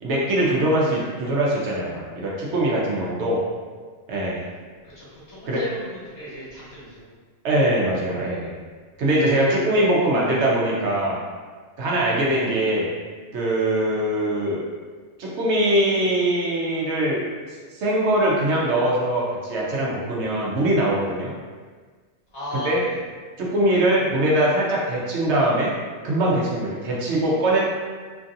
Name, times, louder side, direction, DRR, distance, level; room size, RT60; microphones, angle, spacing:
voice 1, 0.0-3.4 4.1-4.4 5.5-5.6 7.4-8.5 9.0-11.2 11.8-12.9 13.3-14.6 15.2-17.2 17.7-21.3 22.5-22.8 23.4-25.7 26.0-27.7, right 1 dB, 85° right, -4 dB, 1.0 m, -22 dB
voice 2, 4.8-7.1 22.3-23.0, equal, 65° left, -8 dB, 1.3 m, -36 dB
3.0 x 2.6 x 2.5 m, 1.5 s
omnidirectional pair, 1.1 m